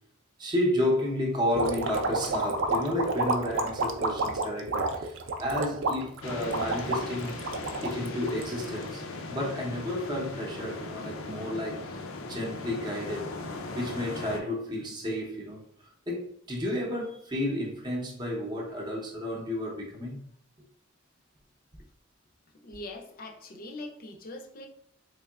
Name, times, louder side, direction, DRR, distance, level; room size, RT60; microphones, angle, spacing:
voice 1, 0.4-7.4 7.8-12.0 12.3-13.3 13.7-20.3, left 1 dB, 20° right, 0.7 m, -32 dB
sound 1, 1.5-8.9, right 3 dB, 65° right, 0.5 m, -30 dB
sound 2, 6.2-14.4, left 2 dB, 90° left, 0.5 m, -38 dB
voice 2, 22.6-24.7, left 2 dB, 45° left, 0.5 m, -42 dB
3.6 x 3.4 x 2.3 m
head